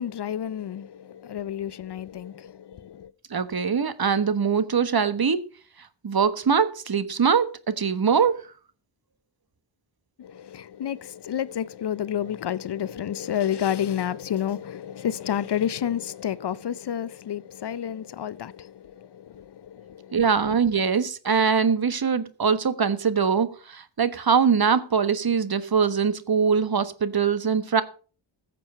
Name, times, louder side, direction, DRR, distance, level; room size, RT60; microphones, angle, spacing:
voice 1, 0.0-3.1 10.2-20.2, left 10 dB, 55° left, 0.6 m, -30 dB
voice 2, 3.3-5.4 6.0-8.3 20.1-27.8, right 6 dB, 50° right, 1.4 m, -22 dB
14.5 x 7.6 x 5.5 m
cardioid pair, 65°, 49 cm